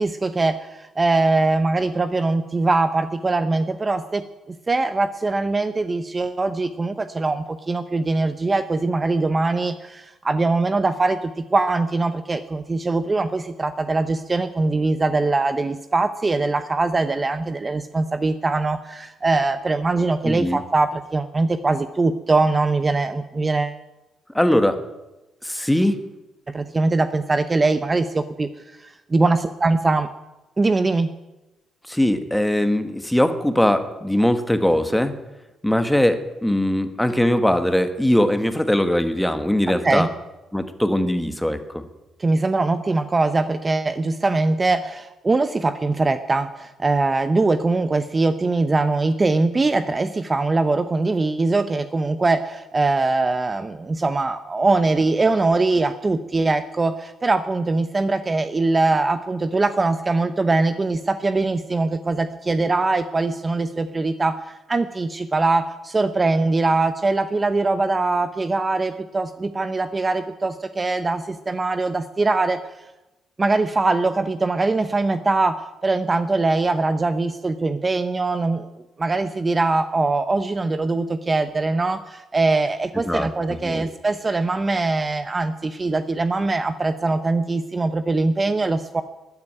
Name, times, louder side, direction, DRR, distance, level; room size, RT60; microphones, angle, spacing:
voice 1, 0.0-23.8 26.5-28.5 28.8-30.1 30.6-31.1 39.7-40.1 42.2-72.6 73.4-78.7 79.0-89.0, right 3 dB, 25° right, 11 dB, 0.7 m, -22 dB
voice 2, 20.2-20.6 24.3-24.8 25.4-26.0 31.9-35.1 35.6-40.1 40.5-41.8 83.0-83.9, left 1 dB, 5° left, 9 dB, 1.5 m, -21 dB
13.0 x 9.7 x 9.1 m, 1.0 s
cardioid pair, 90°, 0 cm